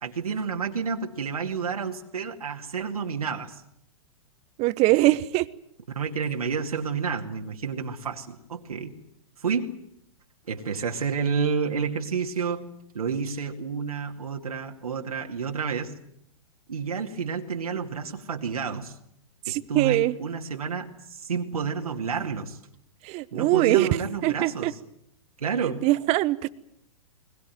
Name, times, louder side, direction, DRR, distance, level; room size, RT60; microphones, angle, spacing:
voice 1, 0.0-3.6 5.1-5.2 5.9-8.9 9.4-9.7 10.5-12.6 12.9-15.9 16.7-19.0 19.5-22.6 23.3-24.7 25.4-25.9, right 6 dB, 80° right, 2 dB, 2.4 m, -30 dB
voice 2, 4.6-5.4 19.5-20.2 23.0-23.9 24.2-24.7 25.8-26.5, right 18 dB, 35° right, 16 dB, 1.1 m, -22 dB
21.5 x 21.0 x 9.3 m, 0.74 s
hypercardioid pair, 110°, 19 cm